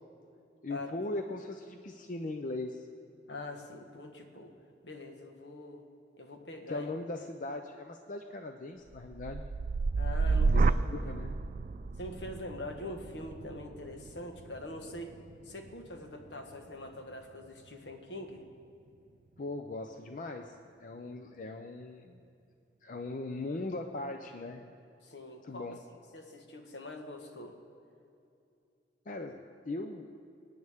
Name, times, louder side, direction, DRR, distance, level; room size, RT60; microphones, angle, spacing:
voice 1, 0.6-2.9 6.7-9.4 10.5-11.4 19.4-20.5 20.8-22.2 22.8-24.7 25.4-25.8 29.1-29.4 29.7-30.1, left 2 dB, 45° left, 5 dB, 0.6 m, -39 dB
voice 2, 3.3-4.5 4.8-5.8 6.2-6.9 10.0-10.7 11.0-11.2 12.0-15.1 15.4-18.4 25.0-25.8 26.1-27.5, left 1 dB, 75° left, 4 dB, 1.4 m, -44 dB
sound 1, 8.9-17.0 17.4-17.9, right 3 dB, 45° right, 0.3 m, -32 dB
25.0 x 9.5 x 3.6 m, 2.6 s
head